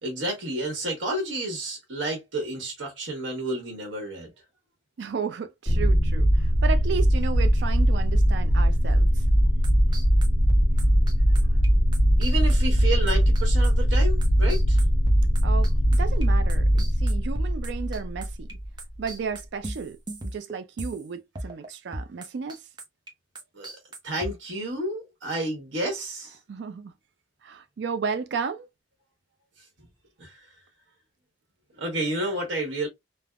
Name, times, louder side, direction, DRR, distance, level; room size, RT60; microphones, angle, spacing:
voice 1, 0.0-4.3 12.2-14.8 23.5-23.7 24.0-26.3 30.2-30.5 31.7-32.9, right 1 dB, 90° right, 1.1 m, -30 dB
voice 2, 5.0-9.2 15.4-18.6 19.0-22.6 26.5-26.9 27.4-28.7, right 6 dB, 65° right, 0.4 m, -33 dB
sound 1, 5.7-18.7, equal, 5° left, 1.4 m, -21 dB
sound 2, 9.6-18.5 18.8-21.1 21.4-21.7 21.9-23.1 23.4-24.3, right 1 dB, 25° right, 0.6 m, -37 dB
3.3 x 2.0 x 2.3 m
head